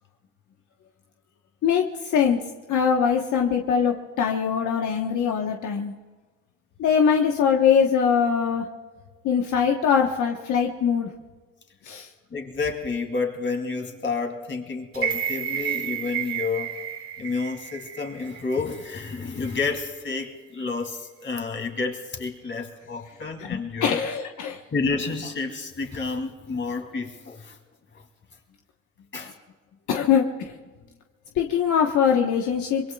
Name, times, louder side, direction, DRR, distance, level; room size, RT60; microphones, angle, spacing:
voice 1, 1.6-2.4 2.7-5.9 6.8-8.6 9.2-11.1 11.8-12.1 23.4-24.6 29.9-30.5 31.4-32.9, left 7 dB, 75° left, 1 dB, 1.2 m, -22 dB
voice 2, 12.3-16.8 17.2-24.0 24.7-27.6 27.9-28.0 29.1-29.3, left 4 dB, 40° left, 3 dB, 2.8 m, -30 dB
sound 1, 14.9-19.1 19.5-19.6, right 10 dB, 50° right, 1.6 m, -31 dB
25.5 x 22.5 x 2.4 m, 1.3 s
cardioid pair, 90°, 30 cm